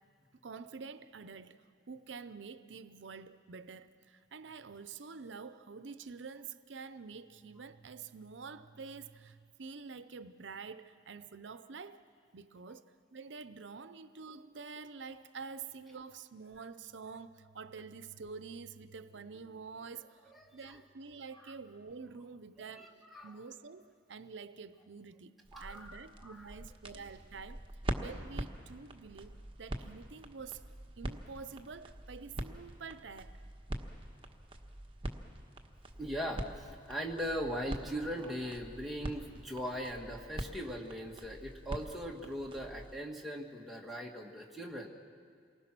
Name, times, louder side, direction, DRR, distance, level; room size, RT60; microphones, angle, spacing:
voice 1, 0.4-12.1 12.3-23.0 23.2-27.7 27.9-30.6 31.0-33.4, right 5 dB, 80° right, 0.7 m, -48 dB
voice 2, 20.3-20.8 21.3-21.5 22.7-23.3 25.5-26.5 36.0-44.9, equal, ahead, 2.0 m, -40 dB
sound 1, 25.4-43.0, right 1 dB, 30° right, 1.3 m, -44 dB
28.5 x 20.0 x 6.1 m
head